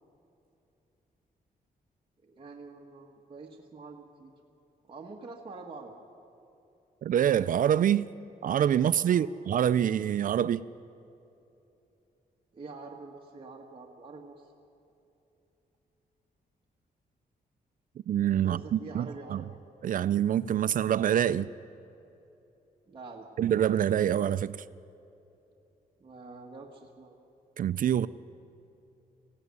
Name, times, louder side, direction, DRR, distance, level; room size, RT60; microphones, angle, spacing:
voice 1, 2.2-4.3 4.9-5.9 9.1-9.3 12.5-14.5 18.4-19.5 22.9-23.3 26.0-27.2, right 3 dB, 35° right, 1.5 m, -46 dB
voice 2, 7.0-8.1 8.4-10.6 18.1-19.4 19.8-21.5 23.4-24.6 27.6-28.1, right 10 dB, 60° right, 0.4 m, -26 dB
20.5 x 15.5 x 9.7 m
wide cardioid pair, 140°, 16 cm